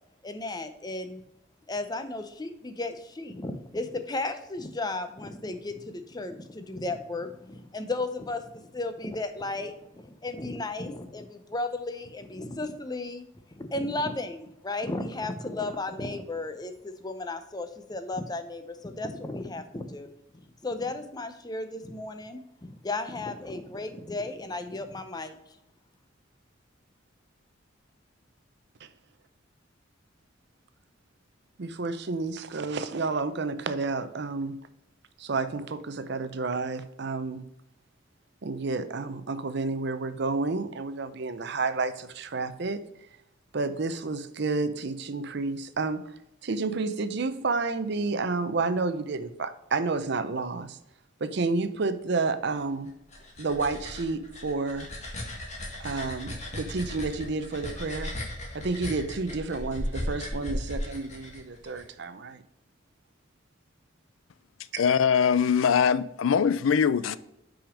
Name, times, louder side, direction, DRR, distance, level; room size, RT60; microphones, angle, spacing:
voice 1, 0.2-1.2 1.7-13.3 13.6-20.1 20.6-25.4, left 2 dB, 20° left, 0.6 m, -34 dB
voice 2, 31.6-34.6 35.2-37.5 38.4-42.8 43.5-50.8 51.2-52.9 53.4-54.9 55.8-58.1 58.5-62.4, right 3 dB, 55° right, 0.6 m, -30 dB
sound 1, 52.9-61.8, left 1 dB, 35° left, 1.7 m, -36 dB
voice 3, 64.8-67.2, left 7 dB, 80° left, 0.4 m, -22 dB
6.0 x 5.0 x 5.0 m
head